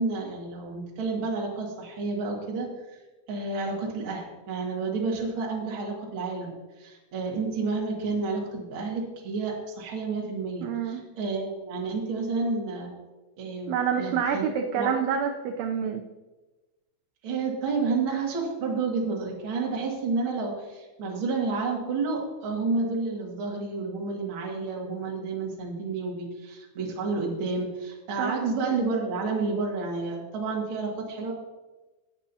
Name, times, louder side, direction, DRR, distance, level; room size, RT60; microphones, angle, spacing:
voice 1, 0.0-2.7 3.3-12.9 13.4-15.0 17.2-31.3, right 4 dB, 50° right, -2 dB, 1.6 m, -30 dB
voice 2, 10.6-11.0 13.7-16.0 28.2-28.4, right 7 dB, 85° right, 3 dB, 2.3 m, -27 dB
18.5 x 8.1 x 2.8 m, 1.2 s
omnidirectional pair, 5.5 m